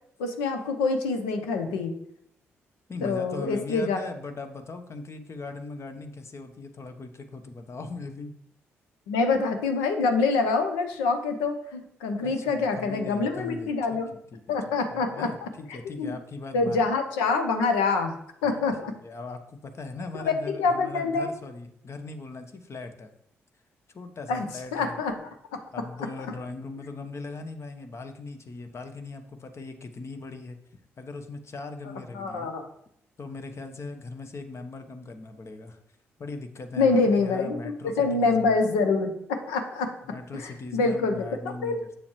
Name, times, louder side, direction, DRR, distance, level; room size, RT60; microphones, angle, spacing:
voice 1, 0.2-1.9 3.0-4.0 9.1-14.1 14.5-16.2 16.5-18.9 20.1-21.3 24.3-24.5 24.7-25.3 26.3-26.4 32.1-32.7 36.8-39.9 40.3-41.2 41.6-41.8, left 4 dB, 85° left, 6 dB, 0.8 m, -26 dB
voice 2, 2.9-8.3 12.2-16.8 18.4-18.6 19.0-23.1 23.9-25.0 25.7-30.6 31.0-32.5 33.2-35.8 36.2-38.6 40.0-41.9, left 3 dB, 45° left, 7 dB, 1.1 m, -39 dB
7.9 x 6.9 x 3.1 m, 0.71 s
hypercardioid pair, 40°, 6 cm